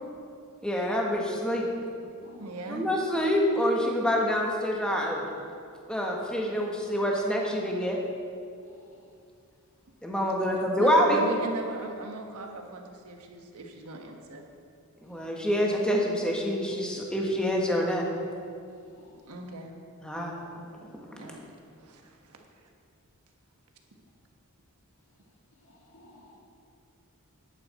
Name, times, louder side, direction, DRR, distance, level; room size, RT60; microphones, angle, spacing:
voice 1, 0.6-1.7 2.7-5.2 5.9-8.0 10.0-11.2 15.0-18.0 20.0-20.4 20.9-21.0 21.3-21.4, equal, 5° left, -1 dB, 1.2 m, -26 dB
voice 2, 2.4-2.9 10.5-14.4 19.3-19.7 21.2-21.4 21.8-22.7, right 2 dB, 85° right, 3 dB, 1.2 m, -38 dB
voice 3, 8.6-8.9 15.1-15.3 18.7-19.3 25.6-26.4, left 2 dB, 60° left, -4 dB, 1.8 m, -56 dB
11.0 x 8.9 x 4.2 m, 2.4 s
head